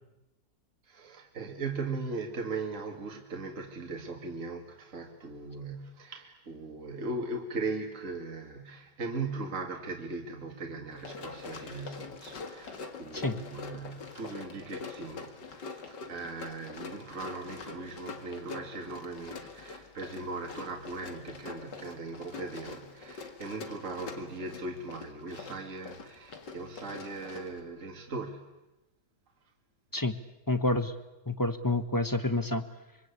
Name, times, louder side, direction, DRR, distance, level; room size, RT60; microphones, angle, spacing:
voice 1, 0.9-28.5, right 3 dB, 45° right, 2.5 m, -39 dB
Run, 10.9-27.6, left 4 dB, 90° left, 2.6 m, -44 dB
voice 2, 30.5-30.9 31.3-32.6, left 2 dB, 15° left, 1.0 m, -28 dB
26.0 x 24.5 x 8.4 m
omnidirectional pair, 1.8 m